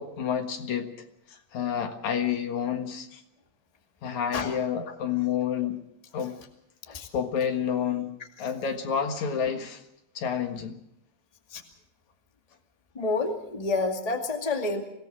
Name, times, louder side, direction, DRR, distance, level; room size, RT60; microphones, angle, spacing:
voice 1, 0.0-3.2 4.0-5.8 6.1-6.3 6.9-9.8 10.1-10.8, left 8 dB, 70° left, 5 dB, 3.0 m, -29 dB
voice 2, 12.9-14.8, left 3 dB, 15° left, 3 dB, 1.9 m, -29 dB
25.0 x 18.0 x 6.3 m, 0.79 s
omnidirectional pair, 3.5 m